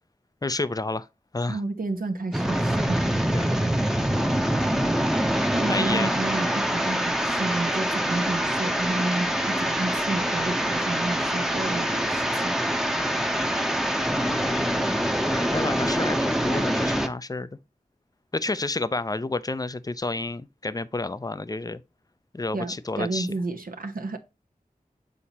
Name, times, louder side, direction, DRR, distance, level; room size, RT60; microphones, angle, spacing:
voice 1, 0.4-1.1 1.3-1.6 3.3-3.5 4.1-4.9 5.7-6.2 14.1-17.5 18.3-21.8 22.3-23.3, left 2 dB, 25° left, 0.5 m, -30 dB
voice 2, 1.5-3.1 5.5-12.6 22.5-24.2, right 2 dB, 70° right, 0.9 m, -31 dB
sound 1, 2.3-17.1, equal, 5° right, 0.8 m, -25 dB
8.5 x 4.1 x 2.8 m
wide cardioid pair, 60°, 15 cm